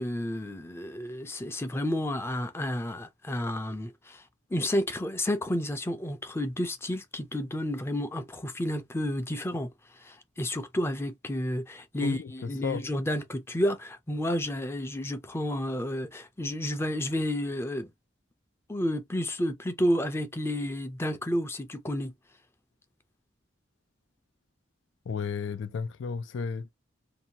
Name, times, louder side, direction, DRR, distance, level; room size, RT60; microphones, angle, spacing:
voice 1, 0.0-4.2 4.5-17.9 18.7-22.1, left 1 dB, 15° left, 0.4 m, -31 dB
voice 2, 12.0-12.9 25.1-26.7, left 6 dB, 85° left, 0.4 m, -33 dB
2.7 x 2.2 x 2.7 m
head